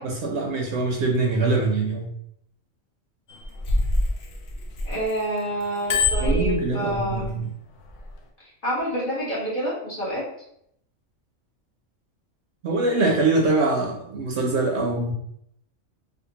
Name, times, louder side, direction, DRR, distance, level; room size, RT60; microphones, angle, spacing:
voice 1, 0.0-2.1 6.2-7.5 12.6-15.1, right 3 dB, 65° right, 0 dB, 0.8 m, -23 dB
Bicycle bell, 3.3-5.2 5.6-7.3 7.9-8.1, left 2 dB, 85° left, 0.4 m, -24 dB
voice 2, 4.8-7.2 8.6-10.2, right 1 dB, 40° left, -8 dB, 1.5 m, -27 dB
3.4 x 2.5 x 2.8 m, 0.72 s
omnidirectional pair, 1.4 m